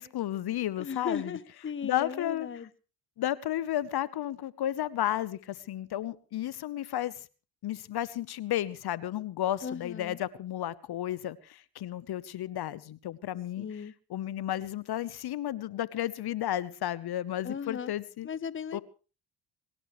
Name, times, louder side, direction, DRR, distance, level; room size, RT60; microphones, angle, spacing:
voice 1, 0.0-1.4 1.8-2.5 3.2-7.1 7.6-13.7 14.1-18.3 18.7-18.8, left 12 dB, 60° left, 19 dB, 1.0 m, -33 dB
voice 2, 0.8-2.7 9.6-10.2 13.6-13.9 17.4-17.9 18.2-18.8, left 6 dB, 25° left, 19 dB, 1.0 m, -36 dB
22.5 x 18.0 x 3.2 m, 0.37 s
hypercardioid pair, 55°, 44 cm